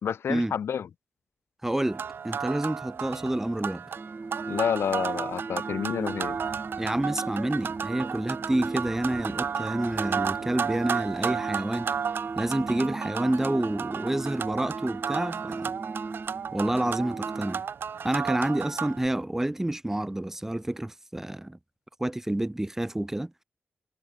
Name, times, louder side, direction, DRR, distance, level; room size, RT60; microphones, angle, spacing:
voice 1, 0.0-0.9 4.5-6.4, left 8 dB, 75° left, 2.7 m, -29 dB
voice 2, 1.6-3.8 6.8-11.9 12.4-15.8 16.5-17.6 18.0-21.6 22.0-23.3, right 1 dB, 10° right, 5.4 m, -28 dB
sound 1, 1.8-19.1, right 7 dB, 60° right, 2.7 m, -33 dB
sound 2, 4.0-17.6, right 3 dB, 25° right, 3.8 m, -38 dB
wide cardioid pair, 165°, 4 cm